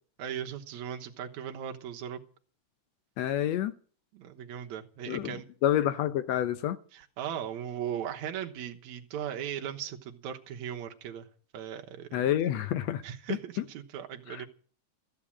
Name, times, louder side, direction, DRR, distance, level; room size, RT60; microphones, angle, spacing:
voice 1, 0.2-2.2 4.1-5.5 6.9-11.3 11.5-12.2 13.0-14.5, right 9 dB, 65° right, 2.4 m, -38 dB
voice 2, 3.2-3.8 5.1-5.4 5.6-6.8 12.1-13.0 13.3-13.6 14.3-14.5, left 11 dB, 70° left, 1.7 m, -28 dB
14.5 x 8.8 x 8.5 m
omnidirectional pair, 3.7 m